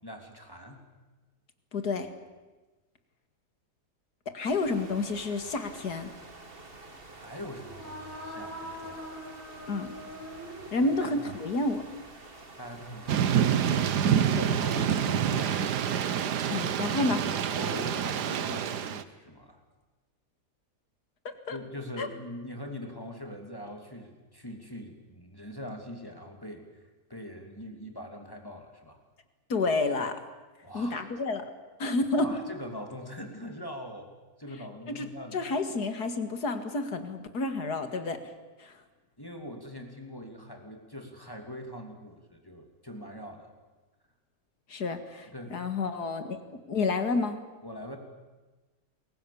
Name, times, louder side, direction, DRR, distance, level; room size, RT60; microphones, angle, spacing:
voice 1, 0.0-0.8 7.1-9.2 10.8-11.1 12.6-13.8 14.6-15.6 17.5-19.6 21.5-26.8 27.1-29.0 30.6-31.1 32.2-34.1 34.4-35.4 39.2-43.5 45.3-45.6 47.6-48.0, equal, 15° left, 3 dB, 2.9 m, -42 dB
voice 2, 1.7-2.1 4.3-6.1 9.7-9.9 10.7-11.8 14.4-14.6 16.5-17.2 21.2-21.6 22.0-22.1 29.5-30.2 30.7-31.4 31.8-32.3 34.9-38.2 38.6-38.8 44.7-46.4 46.7-47.4, left 3 dB, 70° left, 8 dB, 2.6 m, -30 dB
sound 1, 4.5-14.0, right 2 dB, 35° right, 2.3 m, -49 dB
sound 2, 7.5-11.3, equal, 10° right, 3.2 m, -43 dB
Thunder / Rain, 13.1-19.0, right 8 dB, 85° right, 1.6 m, -27 dB
28.5 x 22.0 x 7.2 m, 1.2 s
omnidirectional pair, 1.7 m